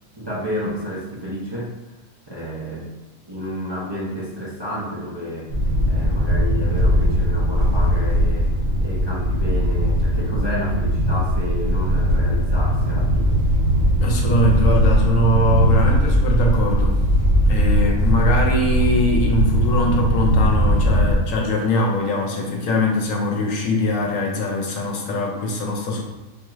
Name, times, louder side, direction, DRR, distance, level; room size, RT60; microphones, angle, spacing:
voice 1, 0.2-1.7 2.3-3.0 3.3-5.5 5.9-8.5 8.8-13.4, equal, 30° right, -7 dB, 0.5 m, -30 dB
sound 1, 5.5-21.1, equal, 65° right, 1.3 m, -19 dB
voice 2, 14.0-17.0 17.5-26.0, left 1 dB, 70° left, 0 dB, 1.0 m, -21 dB
4.4 x 2.4 x 3.1 m, 1.1 s
omnidirectional pair, 1.5 m